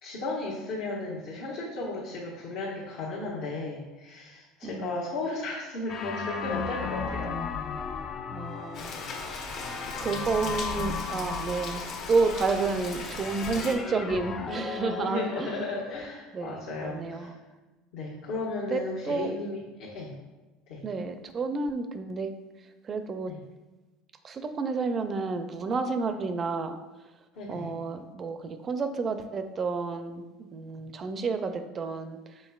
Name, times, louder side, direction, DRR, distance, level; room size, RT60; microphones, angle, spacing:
voice 1, 0.0-7.4 15.0-17.3 17.9-20.1 20.7-20.8 23.3-23.4 27.3-27.7, left 2 dB, 75° left, -7 dB, 1.1 m, -35 dB
voice 2, 4.6-5.0 8.3-9.7 10.0-11.8 12.1-15.6 16.3-17.3 18.7-19.3 20.8-22.3 22.8-23.3 24.2-26.8 27.5-32.2, right 4 dB, 30° right, 8 dB, 0.4 m, -30 dB
sound 1, 5.9-16.0, left 5 dB, 35° left, 0.4 m, -36 dB
Rain, 8.7-13.7, left 3 dB, 50° left, 0.8 m, -38 dB
5.3 x 4.3 x 2.3 m, 1.1 s
supercardioid pair, 110°, 0 cm